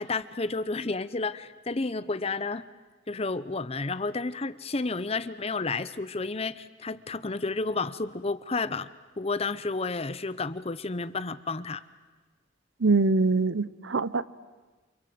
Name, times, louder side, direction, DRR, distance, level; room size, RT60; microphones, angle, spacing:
voice 1, 0.0-2.7 3.1-8.9 9.2-11.8, left 3 dB, 30° left, 15 dB, 0.8 m, -31 dB
voice 2, 12.8-14.2, right 3 dB, 85° right, 17 dB, 0.9 m, -23 dB
28.5 x 26.0 x 7.9 m, 1.3 s
head